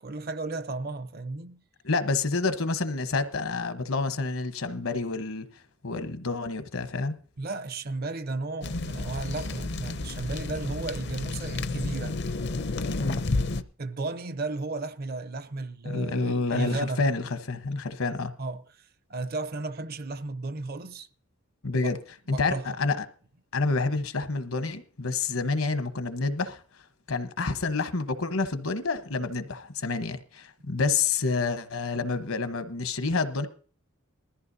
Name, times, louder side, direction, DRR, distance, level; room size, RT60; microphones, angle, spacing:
voice 1, 0.0-1.6 7.4-12.2 13.8-17.0 18.4-21.1 21.8-22.0 22.3-22.8, right 3 dB, 45° right, 0.6 m, -34 dB
voice 2, 1.8-5.5 5.8-7.2 13.0-13.4 15.8-18.3 21.6-22.0 22.3-23.1 23.5-26.6 27.1-33.5, left 3 dB, 75° left, 1.1 m, -28 dB
sound 1, 8.6-13.6, left 3 dB, 50° left, 0.6 m, -31 dB
20.5 x 14.0 x 2.7 m
head